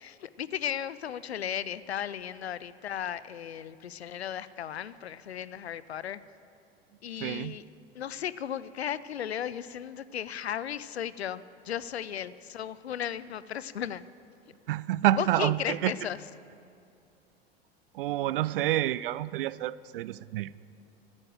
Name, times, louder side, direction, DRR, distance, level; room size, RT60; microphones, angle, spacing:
voice 1, 0.0-6.2 7.0-7.6 7.9-14.0 15.2-16.2, left 9 dB, 80° left, 17 dB, 0.5 m, -35 dB
voice 2, 7.2-7.6 14.7-15.9 17.9-20.5, right 14 dB, 60° right, 19 dB, 0.5 m, -28 dB
14.0 x 9.8 x 7.7 m, 2.5 s
figure-of-eight pair, 80°, 32 cm